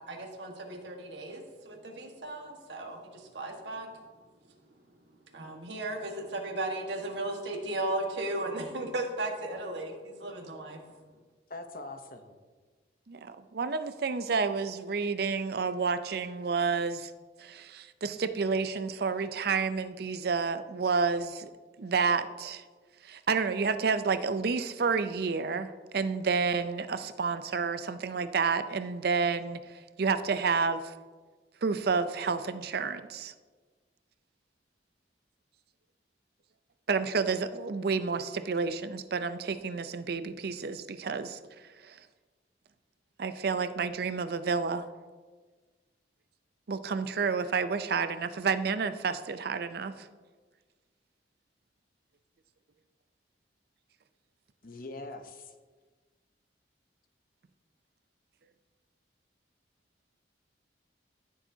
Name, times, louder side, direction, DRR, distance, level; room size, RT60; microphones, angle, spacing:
voice 1, 0.1-3.9 5.3-10.8, right 2 dB, 75° right, 2 dB, 1.5 m, -36 dB
voice 2, 11.5-12.4 54.6-55.5, left 2 dB, 50° left, 7 dB, 0.8 m, -42 dB
voice 3, 13.1-17.1 17.4-21.5 21.8-22.6 23.0-29.6 30.0-30.9 31.6-33.3 36.9-41.4 41.8-42.0 43.2-44.9 46.7-50.1, right 5 dB, 60° right, 11 dB, 0.5 m, -30 dB
14.0 x 7.2 x 2.8 m, 1.4 s
head